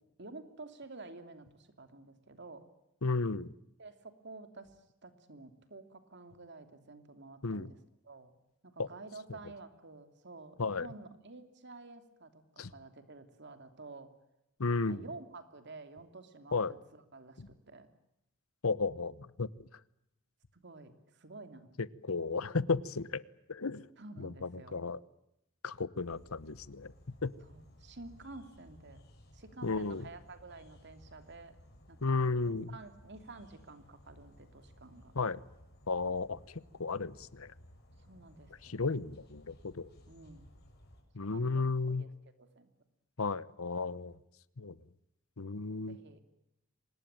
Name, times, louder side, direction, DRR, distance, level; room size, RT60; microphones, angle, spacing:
voice 1, 0.2-2.7 3.8-7.8 8.0-8.3 8.6-14.1 14.8-17.9 20.5-21.9 24.0-24.9 27.5-29.0 29.3-31.6 31.9-32.1 32.4-35.1 38.0-38.8 40.1-40.5 41.2-42.1 42.4-42.7 45.9-46.2, right 3 dB, 55° right, 9 dB, 2.9 m, -51 dB
voice 2, 3.0-3.5 7.4-7.7 8.8-8.9 10.6-10.9 12.6-12.7 14.6-15.0 16.5-16.7 17.4-17.5 18.6-19.5 21.8-23.2 23.5-23.8 24.2-25.0 25.6-26.9 27.2-27.3 29.6-30.1 32.0-32.8 35.1-35.4 35.9-37.5 38.6-39.9 41.1-42.0 43.2-44.2 44.6-44.8 45.4-46.0, left 4 dB, 80° left, 18 dB, 1.0 m, -34 dB
sound 1, 25.9-41.0, equal, 50° left, 6.3 m, -58 dB
25.5 x 20.0 x 8.9 m, 0.84 s
head